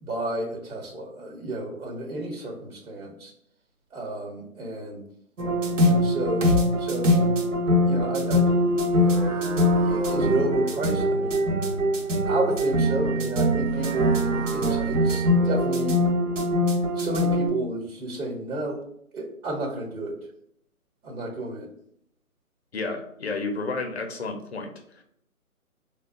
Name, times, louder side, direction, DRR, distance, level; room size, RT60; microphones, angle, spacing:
voice 1, 0.0-3.3 3.9-5.0 5.8-6.5 6.8-7.2 7.8-8.5 9.8-11.4 12.3-15.9 17.0-18.8 19.1-20.1 21.0-21.7, right 2 dB, 75° right, 0 dB, 1.1 m, -31 dB
sound 1, 5.4-17.5, equal, 60° right, 0.7 m, -23 dB
voice 2, 22.7-25.0, left 3 dB, 50° left, 4 dB, 0.6 m, -31 dB
3.4 x 2.2 x 2.4 m, 0.70 s
figure-of-eight pair, 155°, 43 cm